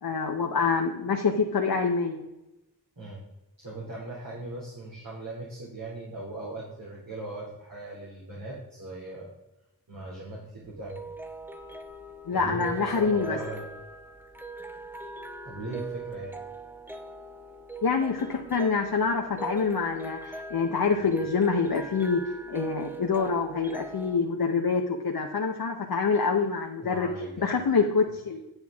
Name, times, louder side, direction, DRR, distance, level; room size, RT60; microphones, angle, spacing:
voice 1, 0.0-2.2 12.3-13.4 17.8-22.2 22.5-27.1 27.4-28.4, left 5 dB, 70° left, 2 dB, 0.9 m, -26 dB
voice 2, 3.6-9.3 9.9-11.0 12.3-13.7 15.4-16.3 26.8-27.5, right 2 dB, 60° right, -6 dB, 2.8 m, -39 dB
sound 1, 10.6-24.2, right 3 dB, 5° right, 0.7 m, -41 dB
9.8 x 7.8 x 3.6 m, 0.95 s
wide cardioid pair, 75°, 38 cm